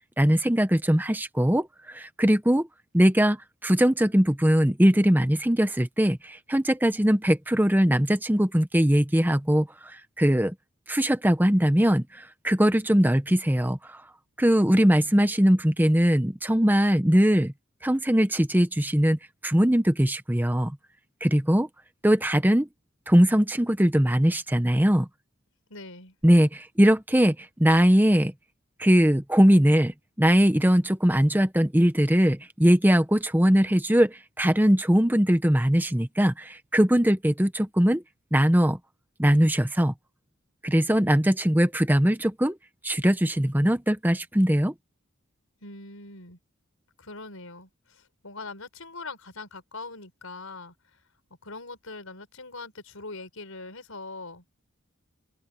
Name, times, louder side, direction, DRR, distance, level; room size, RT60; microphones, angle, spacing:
voice 1, 0.2-2.7 2.9-3.4 3.6-9.7 10.2-10.5 10.9-14.0 14.4-17.5 17.8-19.2 19.4-20.8 21.2-21.7 22.0-22.7 23.1-25.1 26.2-28.3 28.8-38.0 38.3-38.8 39.2-39.9 40.6-42.6 42.8-44.7, equal, 10° right, 0.9 m, -21 dB
voice 2, 25.7-26.2 45.6-46.4 47.0-50.7 51.4-54.4, left 3 dB, 90° left, 5.6 m, -42 dB
head